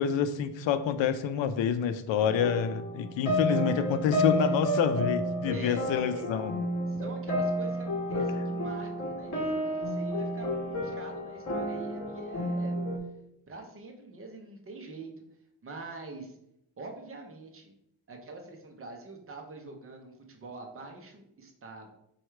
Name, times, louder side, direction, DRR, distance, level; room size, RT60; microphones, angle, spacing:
voice 1, 0.0-6.5, left 8 dB, 80° left, 11 dB, 0.5 m, -27 dB
sound 1, 2.2-13.0, equal, 40° left, 0.9 m, -31 dB
voice 2, 5.5-6.3 6.9-12.7 13.5-15.1 15.6-16.4 16.8-17.7 18.1-21.9, right 2 dB, 30° right, 3 dB, 0.6 m, -44 dB
4.7 x 2.3 x 4.4 m, 0.77 s
wide cardioid pair, 175°, 45 cm